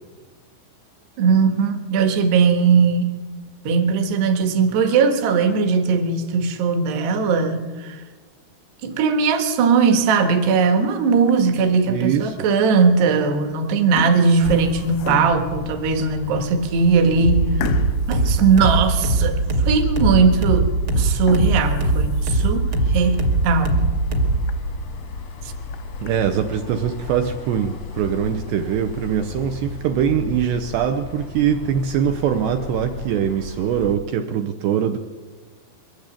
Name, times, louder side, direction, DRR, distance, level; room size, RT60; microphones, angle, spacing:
voice 1, 1.2-3.2 3.6-8.0 8.8-17.5 18.1-23.8, right 5 dB, 65° right, 7 dB, 3.2 m, -19 dB
sound 1, 11.2-11.7 12.3-12.4 13.2-13.5 13.7-15.6 16.2-16.3 16.7-16.8 17.6-19.4 19.8-19.9 20.4-20.5 21.1-22.7 23.2-23.3 23.7-23.8 24.1-24.2 24.5-24.6 25.5-26.1, left 9 dB, 85° left, 3.5 m, -35 dB
voice 2, 11.9-12.4 26.0-35.0, right 9 dB, 80° right, 7 dB, 2.4 m, -22 dB
sound 2, 14.4-33.9, left 4 dB, 70° left, 1.3 m, -34 dB
sound 3, 17.2-24.6, right 2 dB, 50° right, 1.6 m, -21 dB
22.5 x 15.5 x 8.4 m, 1.4 s
omnidirectional pair, 6.0 m